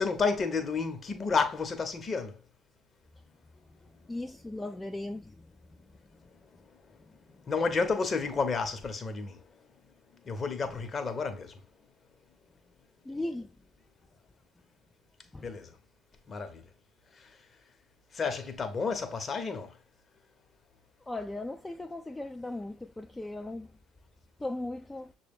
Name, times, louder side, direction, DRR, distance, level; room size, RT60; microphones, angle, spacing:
voice 1, 0.0-2.4 7.5-9.4 10.2-11.5 15.4-15.7 16.3-16.6 18.1-19.7, left 4 dB, 40° left, 0.9 m, -31 dB
voice 2, 4.1-5.5 13.1-13.5 15.3-15.5 21.1-23.7 24.4-25.1, left 2 dB, 15° left, 0.3 m, -37 dB
6.4 x 2.3 x 3.5 m
hypercardioid pair, 60°, 0 cm